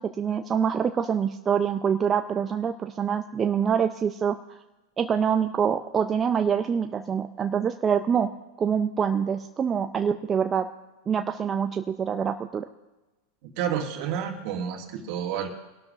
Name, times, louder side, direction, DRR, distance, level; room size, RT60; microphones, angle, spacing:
voice 1, 0.0-4.6 5.0-8.3 8.6-10.7 11.1-12.7, right 7 dB, 25° right, 7 dB, 0.6 m, -25 dB
voice 2, 13.4-15.5, right 8 dB, 55° right, 2 dB, 2.1 m, -30 dB
23.0 x 12.0 x 2.6 m, 1.1 s
hypercardioid pair, 105°, 0 cm